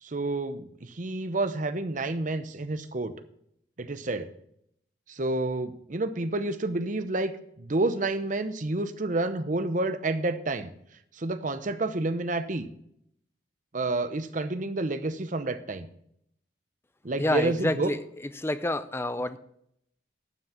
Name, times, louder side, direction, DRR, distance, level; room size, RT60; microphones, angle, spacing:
voice 1, 0.0-3.1 3.8-4.3 5.1-7.3 7.6-10.7 11.2-12.7 13.7-15.9 17.0-17.9, right 2 dB, 45° right, 11 dB, 0.8 m, -29 dB
voice 2, 17.2-18.0 18.4-19.4, left 1 dB, 15° left, 12 dB, 0.5 m, -28 dB
12.0 x 6.3 x 5.8 m, 0.73 s
head